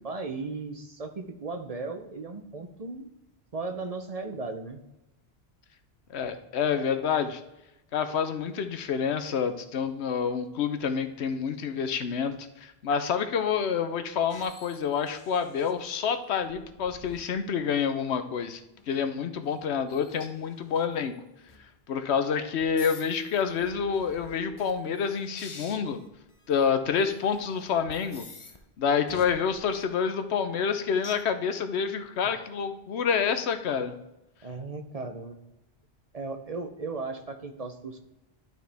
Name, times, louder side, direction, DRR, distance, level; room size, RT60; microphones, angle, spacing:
voice 1, 0.0-3.1 3.5-4.8 34.4-35.4 36.1-38.0, right 3 dB, 40° right, 6 dB, 0.7 m, -36 dB
voice 2, 6.1-7.4 7.9-18.6 18.9-21.2 21.9-26.0 26.5-28.2 28.8-34.0, left 6 dB, 85° left, 9 dB, 1.0 m, -28 dB
sound 1, 14.3-15.7 16.3-17.4 18.4-19.0 19.4-19.6 19.9-20.9 21.5-21.7 22.6-28.6 29.1-29.9 31.0-31.2, left 3 dB, 35° left, 0.7 m, -49 dB
11.5 x 4.7 x 3.4 m, 0.92 s
omnidirectional pair, 1.1 m